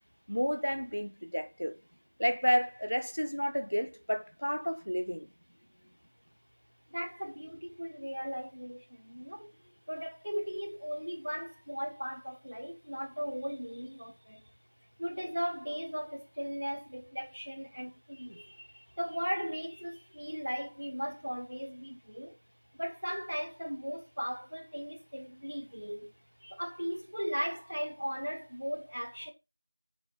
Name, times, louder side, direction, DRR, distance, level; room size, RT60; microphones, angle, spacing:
voice 1, 0.3-1.8 2.2-5.3, equal, 60° left, 1.1 m, -31 dB
voice 2, 6.9-9.5 9.9-14.5 15.0-22.4 22.7-26.1 26.4-29.3, equal, 35° right, 1.5 m, -37 dB
9.4 x 7.0 x 4.3 m
figure-of-eight pair, 180°, 0 cm